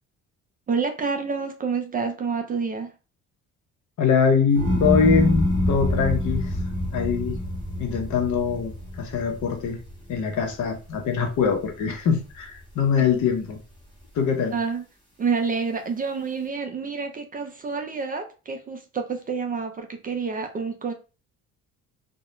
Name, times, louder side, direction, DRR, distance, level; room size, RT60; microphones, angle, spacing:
voice 1, 0.7-2.9 14.5-14.8 15.2-20.9, right 5 dB, 25° right, 0.4 m, -28 dB
voice 2, 4.0-6.5 6.9-7.4 7.8-9.8 10.1-13.6 14.1-14.6, left 6 dB, 65° left, 0.8 m, -23 dB
sound 1, 4.6-10.9 11.3-11.9, left 1 dB, 15° left, 1.1 m, -26 dB
2.3 x 2.1 x 2.9 m
supercardioid pair, 90°, 32 cm